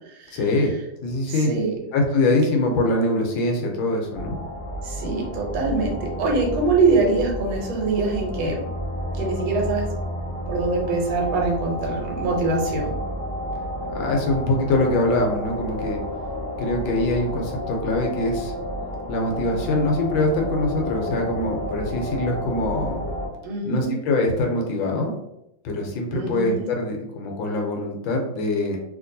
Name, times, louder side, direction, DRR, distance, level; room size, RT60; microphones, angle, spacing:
voice 1, 0.3-0.8 1.0-1.6 1.9-4.4 13.9-16.0 16.6-18.5 19.1-23.1 23.6-25.1 25.6-28.8, left 2 dB, 75° left, 1 dB, 1.3 m, -23 dB
voice 2, 1.4-1.7 4.8-8.6 9.2-9.9 10.5-12.9 23.4-23.9 26.1-26.6, right 3 dB, 75° right, -1 dB, 1.5 m, -23 dB
sound 1, 4.1-23.3, equal, 55° left, 0.3 m, -31 dB
2.9 x 2.8 x 2.6 m, 0.84 s
omnidirectional pair, 2.2 m